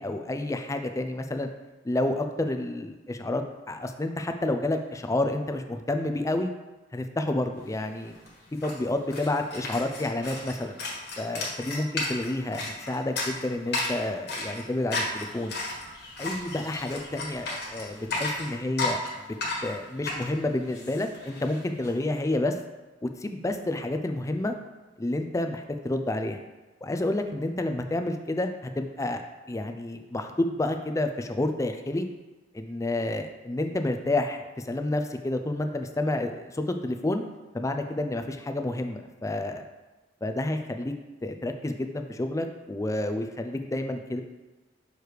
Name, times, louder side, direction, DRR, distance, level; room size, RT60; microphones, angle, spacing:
voice 1, 0.0-1.5 1.8-6.5 6.9-8.1 8.6-10.8 11.2-15.6 16.2-19.0 19.6-22.6 23.0-24.5 25.0-26.4 26.8-29.2 29.5-32.1 32.5-37.2 37.5-39.6 40.2-40.9 41.2-44.2, left 1 dB, 15° left, 6 dB, 0.4 m, -29 dB
sound 1, 7.8-7.9 8.0-21.9, left 2 dB, 60° left, 1.5 m, -34 dB
6.5 x 3.3 x 4.6 m, 1.1 s
head